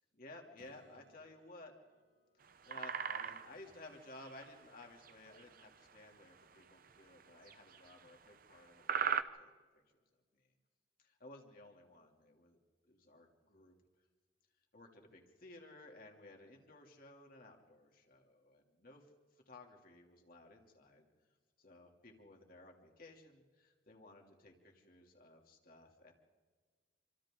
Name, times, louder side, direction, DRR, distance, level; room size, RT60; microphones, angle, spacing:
voice 1, 0.2-1.7 2.6-9.5 9.7-9.8 10.4-10.5 11.0-12.6 12.8-13.7 14.7-19.1 19.5-21.0 21.6-26.1, left 2 dB, 55° left, 1 dB, 2.9 m, -57 dB
Acoustic guitar / Strum, 0.6-4.3 9.2-9.3, right 1 dB, 80° right, 5.0 m, -71 dB
sound 1, 2.4-3.6 4.2-4.5 4.8-5.6 6.4-6.6 7.2-8.3 8.8-9.2, right 7 dB, 55° right, 0.8 m, -38 dB
27.0 x 25.5 x 3.8 m, 1.5 s
head